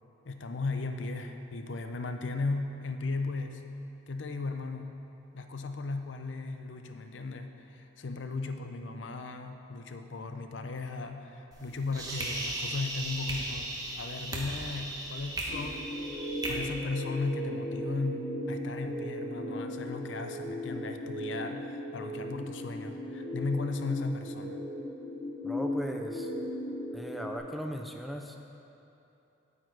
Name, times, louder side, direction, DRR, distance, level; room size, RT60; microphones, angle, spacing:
voice 1, 0.3-3.6 4.1-4.9 5.3-13.7 14.0-16.0 16.5-24.6, left 3 dB, 80° left, 6 dB, 0.6 m, -36 dB
sound 1, 11.5-16.5, right 1 dB, 20° right, 1.1 m, -37 dB
sound 2, 15.5-27.4, equal, 35° left, 1.3 m, -37 dB
voice 2, 25.4-26.3 26.9-28.4, equal, ahead, 2 dB, 0.4 m, -37 dB
8.9 x 8.6 x 4.6 m, 2.8 s
head